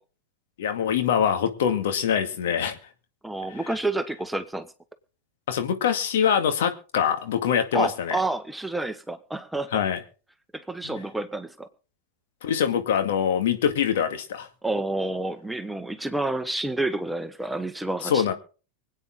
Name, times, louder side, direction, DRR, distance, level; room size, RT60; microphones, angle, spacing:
voice 1, 0.6-2.8 5.5-8.2 9.7-10.0 12.4-14.5 18.0-18.3, left 8 dB, 65° left, 2.1 m, -24 dB
voice 2, 3.2-4.7 7.7-9.8 10.5-11.7 14.6-18.3, right 2 dB, 5° right, 1.2 m, -29 dB
24.5 x 9.0 x 3.8 m
hypercardioid pair, 95°, 0 cm